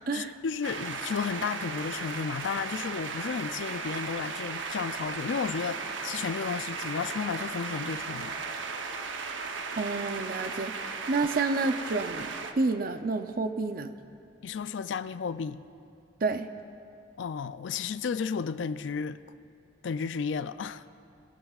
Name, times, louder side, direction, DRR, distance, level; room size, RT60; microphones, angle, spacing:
voice 1, 0.1-8.4 14.4-15.6 17.2-19.2 19.8-20.8, left 6 dB, 75° left, 0.4 m, -33 dB
sound 1, 0.6-12.5, right 4 dB, 85° right, 0.9 m, -36 dB
voice 2, 9.8-14.0 16.2-16.5, right 3 dB, 50° right, 0.5 m, -29 dB
21.5 x 18.0 x 2.4 m
head